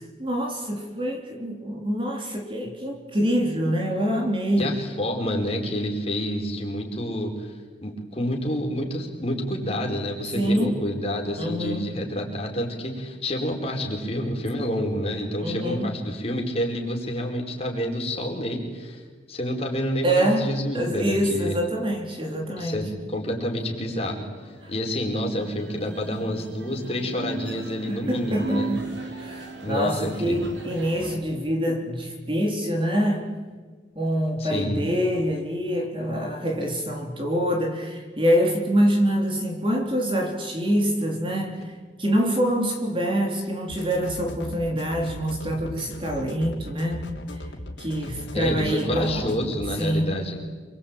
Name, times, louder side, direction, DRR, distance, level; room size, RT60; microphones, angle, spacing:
voice 1, 0.0-4.8 10.3-10.8 11.4-11.9 15.4-15.9 20.0-22.9 24.6-24.7 27.9-33.3 34.0-41.7 42.0-47.4 47.8-49.3 49.8-50.2, equal, 30° right, 1 dB, 3.5 m, -25 dB
voice 2, 4.6-7.5 7.8-19.0 19.3-21.6 22.6-24.3 24.7-28.7 29.6-30.5 34.4-34.8 48.3-50.4, equal, 35° left, 1 dB, 4.7 m, -28 dB
sound 1, 23.9-31.2, right 3 dB, 80° right, 4.3 m, -37 dB
sound 2, 43.7-49.8, left 1 dB, 70° left, 3.5 m, -38 dB
28.0 x 22.0 x 9.0 m, 1.5 s
head